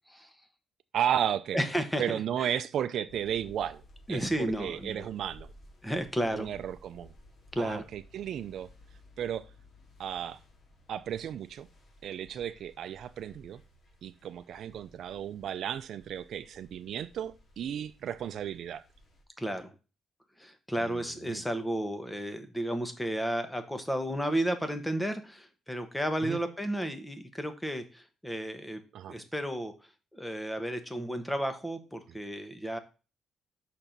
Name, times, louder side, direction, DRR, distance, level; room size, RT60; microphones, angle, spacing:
voice 1, 0.9-1.6 2.0-3.8 4.1-5.5 6.3-7.1 7.6-8.7 9.2-9.5 10.0-10.4 10.9-11.7 12.0-13.6 14.0-18.8 20.8-21.4 26.2-26.4 28.9-29.2, right 9 dB, 70° right, 0.4 m, -34 dB
voice 2, 1.5-2.5 4.1-5.1 5.8-6.5 7.5-7.8 19.4-19.7 20.4-28.8 29.1-29.7 30.1-32.8, right 1 dB, 5° left, 1.2 m, -33 dB
sound 1, 3.1-19.2, left 1 dB, 50° left, 2.5 m, -57 dB
5.9 x 4.4 x 5.2 m
cardioid pair, 90°, 0 cm